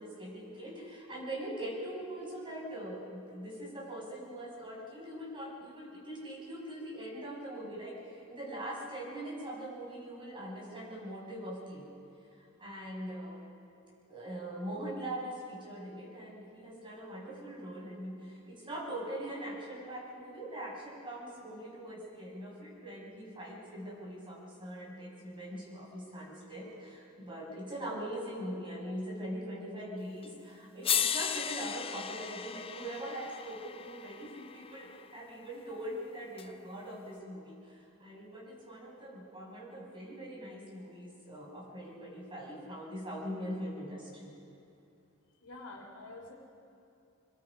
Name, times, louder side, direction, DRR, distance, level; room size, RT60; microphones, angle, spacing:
voice 1, 0.0-11.9 12.3-13.4 14.1-44.3, right 1 dB, 25° right, -5 dB, 6.2 m, -42 dB
sound 1, 30.2-30.3 30.8-35.0 36.4-36.5, left 8 dB, 25° left, 0.5 m, -35 dB
voice 2, 45.4-46.3, left 2 dB, 85° left, 0 dB, 3.3 m, -47 dB
26.0 x 21.0 x 5.0 m, 2.6 s
head